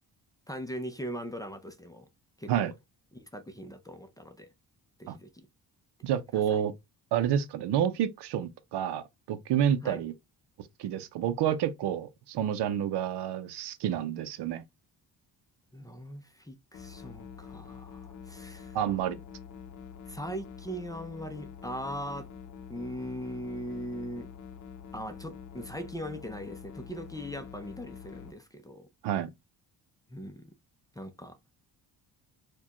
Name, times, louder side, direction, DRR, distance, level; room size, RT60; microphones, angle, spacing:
voice 1, 0.5-2.1 2.4-2.7 3.1-4.5 5.0-5.5 6.3-6.6 9.8-10.0 15.7-18.8 20.1-22.3 22.7-24.3 24.9-28.9 30.1-30.5 31.0-31.4, equal, 10° left, 0.5 m, -40 dB
voice 2, 6.0-6.7 7.1-10.1 10.8-14.6 18.7-19.2 29.0-29.3, right 9 dB, 80° right, 0.6 m, -29 dB
sound 1, 16.7-28.3, left 7 dB, 45° left, 0.7 m, -46 dB
4.4 x 2.3 x 2.9 m
cardioid pair, 125°, 40 cm